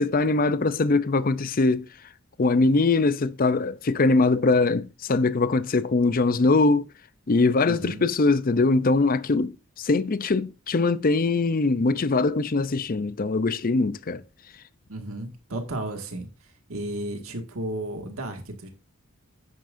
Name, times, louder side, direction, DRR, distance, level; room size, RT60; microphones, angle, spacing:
voice 1, 0.0-1.9 2.4-6.9 7.3-14.2, left 3 dB, 40° left, 0.5 m, -22 dB
voice 2, 7.7-8.1 14.9-16.3 16.7-18.7, right 1 dB, 80° right, 2.0 m, -33 dB
10.5 x 9.1 x 2.6 m
head